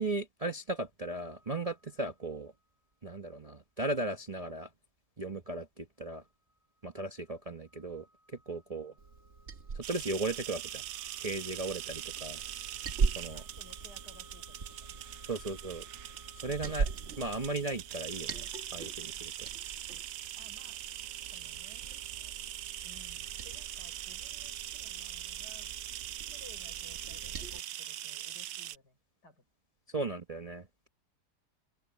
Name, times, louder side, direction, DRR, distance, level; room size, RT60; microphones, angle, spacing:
voice 1, 0.0-2.5 3.0-4.7 5.2-6.2 6.8-8.1 8.5-8.9 9.7-10.8 11.2-12.4 13.2-13.4 15.2-15.9 16.4-16.9 17.2-19.5 29.9-30.9, right 2 dB, 25° right, 0.9 m, -36 dB
sound 1, 1.0-2.9 3.3-3.4 6.1-17.9, equal, ahead, 7.6 m, -63 dB
Liquid, 9.0-27.6, right 5 dB, 45° right, 1.4 m, -41 dB
sound 2, 9.8-28.8, right 13 dB, 85° right, 1.3 m, -42 dB
voice 2, 13.3-15.0 20.3-22.3 22.8-25.7 26.3-29.0 29.2-29.4, left 3 dB, 75° left, 6.7 m, -59 dB
open air
omnidirectional pair, 1.8 m